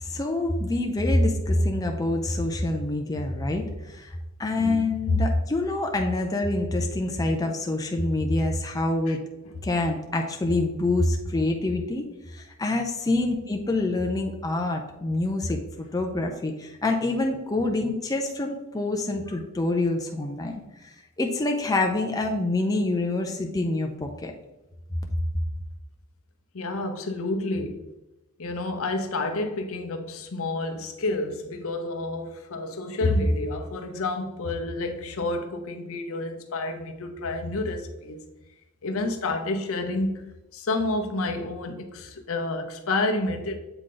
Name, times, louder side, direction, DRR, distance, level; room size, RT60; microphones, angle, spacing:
voice 1, 0.0-4.1 4.4-9.2 9.6-12.0 12.3-20.9 21.2-24.3, left 2 dB, 15° left, 0.5 m, -26 dB
voice 2, 26.5-27.8 28.4-38.2 38.8-43.6, left 2 dB, 65° left, 0.7 m, -29 dB
7.9 x 3.7 x 3.8 m
head